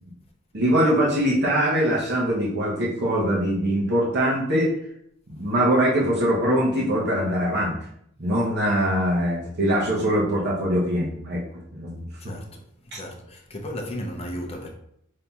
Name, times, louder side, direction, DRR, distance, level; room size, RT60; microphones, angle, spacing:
voice 1, 0.5-4.7 5.3-7.8 8.2-11.4 11.7-12.1, equal, 50° right, 0.8 m, -22 dB
voice 2, 12.2-14.7, equal, 30° left, 0.6 m, -35 dB
5.3 x 2.7 x 2.3 m
head